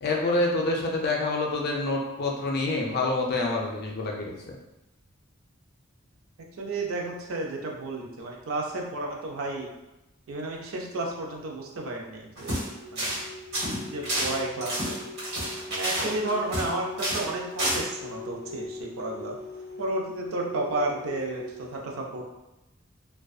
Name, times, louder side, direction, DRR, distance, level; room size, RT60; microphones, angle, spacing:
voice 1, 0.0-4.6, left 2 dB, 50° left, -1 dB, 0.4 m, -27 dB
voice 2, 6.6-9.7 10.3-12.7 12.9-13.1 13.6-15.0 15.7-19.4 19.8-22.3, right 2 dB, 85° right, 0 dB, 0.5 m, -32 dB
sound 1, 12.4-12.7 13.0-13.2 13.5-16.7 17.0-17.3 17.6-17.8, right 1 dB, 55° right, 1.1 m, -29 dB
sound 2, 12.7-21.8, left 2 dB, 10° right, 0.5 m, -41 dB
2.5 x 2.2 x 2.3 m, 0.96 s
head